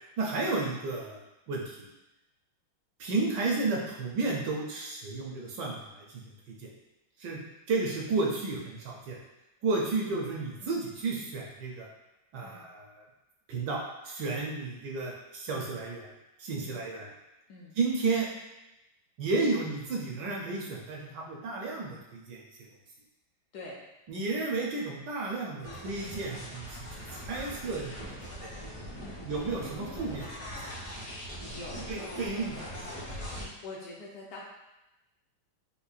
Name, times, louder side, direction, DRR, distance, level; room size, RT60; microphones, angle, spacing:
voice 1, 0.2-1.2 1.5-1.9 3.0-6.7 7.2-7.4 7.7-9.2 9.6-11.9 12.3-13.0 13.5-16.1 16.4-17.1 17.8-18.3 19.2-22.7 24.1-28.5 29.2-30.2 31.9-33.0, right 3 dB, 75° right, -2 dB, 1.2 m, -32 dB
sound 1, 25.6-33.4, equal, 40° left, 0.5 m, -41 dB
voice 2, 31.4-32.0 33.6-34.4, left 2 dB, 70° left, -3 dB, 1.1 m, -45 dB
5.3 x 2.2 x 2.4 m, 0.95 s
omnidirectional pair, 2.1 m